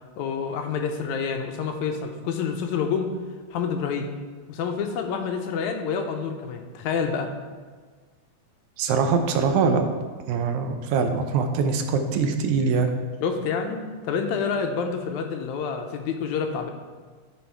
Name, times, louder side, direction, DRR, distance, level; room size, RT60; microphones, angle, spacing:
voice 1, 0.2-3.1 3.5-4.1 4.5-7.3 13.2-16.7, left 6 dB, 80° left, 5 dB, 2.0 m, -28 dB
voice 2, 8.8-9.8 10.3-12.9, right 5 dB, 80° right, 6 dB, 2.1 m, -23 dB
12.5 x 4.2 x 4.5 m, 1.5 s
omnidirectional pair, 3.5 m